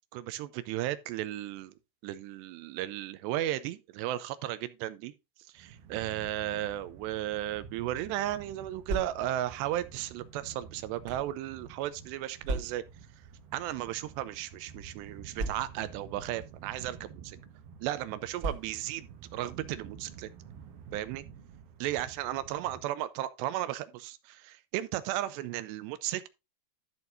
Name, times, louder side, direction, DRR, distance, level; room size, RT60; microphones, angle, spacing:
voice 1, 0.1-1.7 2.0-5.1 5.5-12.8 13.5-17.4 17.8-20.3 20.9-21.2 21.8-26.3, right 13 dB, 80° right, 2.8 m, -35 dB
sound 1, 5.6-22.8, right 7 dB, 65° right, 3.0 m, -50 dB
sound 2, 8.8-9.5 10.3-11.3 12.4-13.0 13.9-14.1 14.3-14.4 15.3-16.0 16.9-17.1 18.4-19.0, right 2 dB, 35° right, 2.5 m, -37 dB
12.5 x 6.9 x 2.5 m
omnidirectional pair, 5.1 m